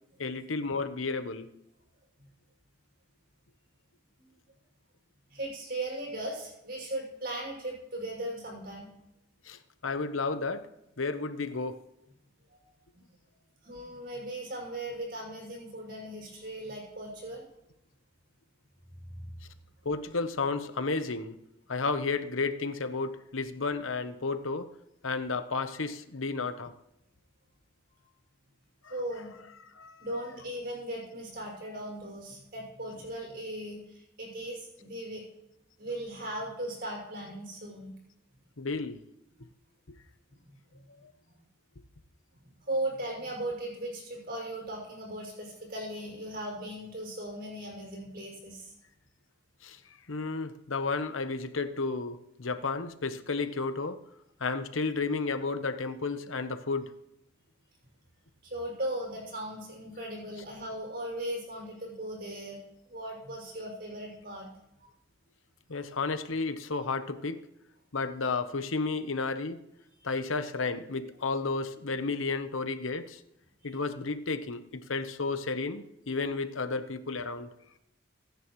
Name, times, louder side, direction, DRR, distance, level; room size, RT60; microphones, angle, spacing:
voice 1, 0.2-1.5 9.4-10.7 11.0-11.8 19.8-21.4 21.7-24.7 25.0-26.7 28.8-28.9 29.7-30.2 38.6-39.0 39.9-40.0 41.0-41.1 49.6-49.8 50.1-54.0 54.4-56.9 65.7-67.4 67.9-69.6 70.0-73.2 73.6-77.5, left 4 dB, 85° left, 10 dB, 1.0 m, -32 dB
voice 2, 5.3-8.9 12.5-12.6 12.9-13.0 13.6-17.5 19.2-19.3 28.9-29.3 30.0-35.2 35.8-38.0 40.3-40.4 40.7-40.8 42.4-48.7 58.4-62.6 62.9-64.5 64.8-64.9 70.0-70.1 73.6-73.8, right 1 dB, 50° right, -1 dB, 6.1 m, -38 dB
24.5 x 10.5 x 3.2 m, 0.85 s
head